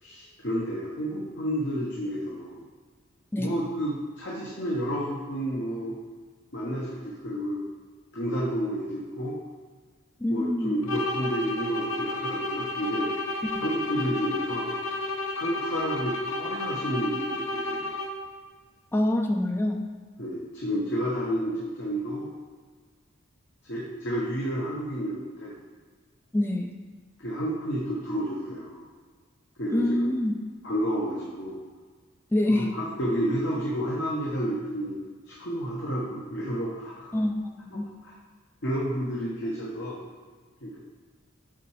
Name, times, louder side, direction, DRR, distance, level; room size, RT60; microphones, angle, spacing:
voice 1, 0.0-2.6 3.4-6.0 6.5-7.6 8.1-9.4 10.3-13.1 13.6-14.7 15.4-17.9 20.2-22.3 23.7-25.6 27.2-28.8 29.6-30.1 30.6-31.6 32.5-35.0 35.3-37.1 37.7-38.1 38.6-40.0 40.6-40.8, equal, 60° left, -5 dB, 1.0 m, -30 dB
voice 2, 10.2-10.8 13.4-13.5 18.9-19.8 26.3-26.7 29.7-30.3 32.3-32.7 37.1-37.9, left 1 dB, 10° left, 3 dB, 0.3 m, -25 dB
sound 1, 10.8-18.4, left 2 dB, 80° left, 0.7 m, -32 dB
5.8 x 4.1 x 4.8 m, 1.5 s
head